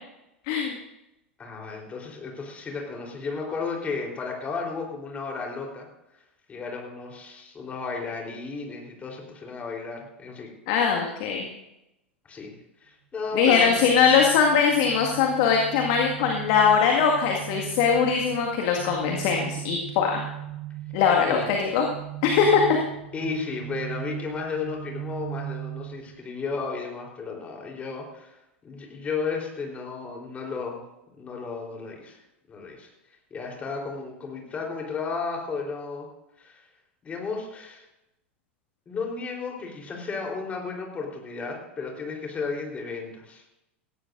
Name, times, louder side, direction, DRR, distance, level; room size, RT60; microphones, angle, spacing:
voice 1, 0.4-0.8 10.7-11.5 13.3-20.2 20.9-21.9 22.2-22.8, left 6 dB, 50° left, 1 dB, 1.9 m, -21 dB
voice 2, 1.4-5.9 6.5-10.5 12.3-12.6 12.8-13.8 21.2-21.5 23.1-28.4 28.6-30.9 31.2-32.2 32.5-32.9 33.3-36.1 36.4-36.6 37.0-37.8 38.9-43.4, left 4 dB, 20° left, 0 dB, 3.7 m, -33 dB
sound 1, 13.4-26.2, right 14 dB, 60° right, 3.7 m, -38 dB
18.5 x 15.5 x 2.6 m, 0.89 s
figure-of-eight pair, 85°, 6 cm